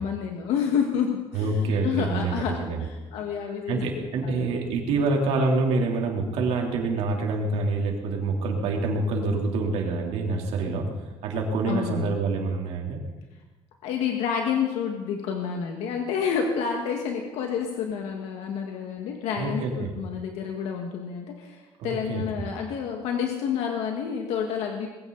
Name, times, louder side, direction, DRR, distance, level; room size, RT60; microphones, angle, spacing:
voice 1, 0.0-4.4 11.7-12.2 13.8-24.9, left 7 dB, 90° left, 2 dB, 1.8 m, -29 dB
voice 2, 1.3-2.9 3.7-10.8 11.2-13.0 19.4-19.9 21.8-22.2, right 3 dB, 80° right, 0 dB, 3.3 m, -26 dB
21.0 x 16.5 x 4.1 m, 1.2 s
cardioid pair, 170°, 10 cm